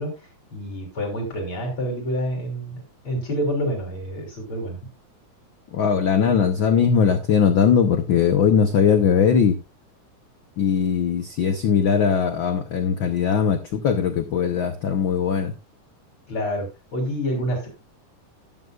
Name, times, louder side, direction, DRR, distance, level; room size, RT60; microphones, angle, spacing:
voice 1, 0.0-4.8 16.3-17.7, equal, 40° left, 0 dB, 4.2 m, -28 dB
voice 2, 5.7-9.6 10.6-15.5, left 7 dB, 80° left, 9 dB, 1.0 m, -20 dB
13.0 x 11.0 x 2.4 m, 0.25 s
omnidirectional pair, 3.5 m